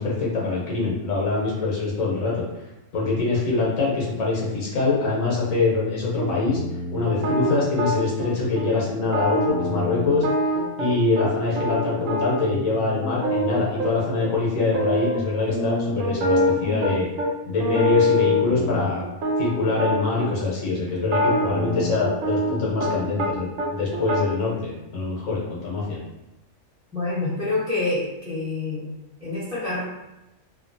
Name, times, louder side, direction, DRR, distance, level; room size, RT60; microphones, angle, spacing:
voice 1, 0.0-2.4 2.9-6.6 6.9-10.2 10.8-17.1 17.5-19.0 19.4-26.0, left 3 dB, 80° left, -5 dB, 1.3 m, -24 dB
sound 1, 6.1-8.3 8.6-8.7 9.0-11.3 11.6-13.9 14.2-14.3 14.6-15.2 15.5-17.3 17.6-20.3 21.0-23.3 23.6-24.2, equal, 75° right, 0.9 m, -25 dB
voice 2, 26.9-28.9 29.2-29.8, left 2 dB, 5° right, -9 dB, 0.8 m, -27 dB
2.8 x 2.5 x 2.6 m, 0.97 s
omnidirectional pair, 1.4 m